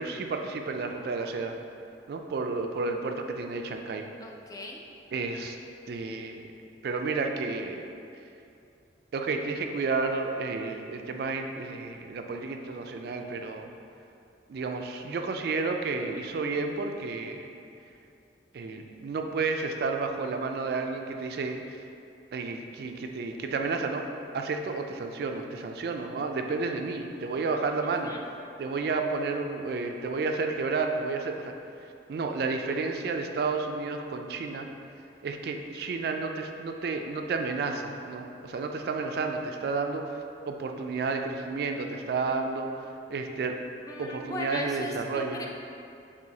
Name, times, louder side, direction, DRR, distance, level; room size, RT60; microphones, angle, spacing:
voice 1, 0.0-1.5 2.1-4.1 5.1-5.6 5.9-6.4 6.8-7.8 9.1-13.7 14.5-17.5 18.5-21.8 22.3-24.0 24.3-28.1 28.6-31.5 32.1-34.7 35.2-42.7 43.1-43.6 44.0-45.4, right 4 dB, 60° right, 4 dB, 0.3 m, -31 dB
voice 2, 4.2-4.8 27.8-28.2 43.9-45.5, left 1 dB, 20° left, 0 dB, 0.3 m, -38 dB
6.9 x 2.7 x 2.7 m, 2.6 s
head